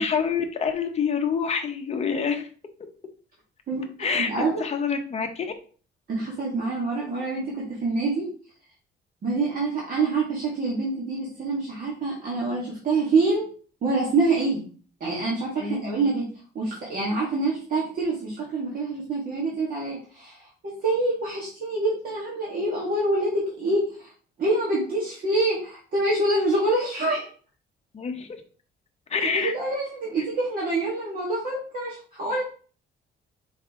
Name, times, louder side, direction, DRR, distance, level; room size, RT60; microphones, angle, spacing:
voice 1, 0.0-2.5 4.0-5.5 15.6-16.0 27.9-28.3 29.1-29.5, left 6 dB, 30° left, 6 dB, 0.8 m, -27 dB
voice 2, 4.1-4.6 6.1-8.3 9.2-13.5 13.8-14.6 15.0-16.3 16.6-20.4 20.8-24.1 24.4-27.3 29.3-32.4, right 2 dB, 45° right, -5 dB, 1.8 m, -26 dB
5.4 x 4.8 x 3.6 m, 0.41 s
cardioid pair, 180°, 20 cm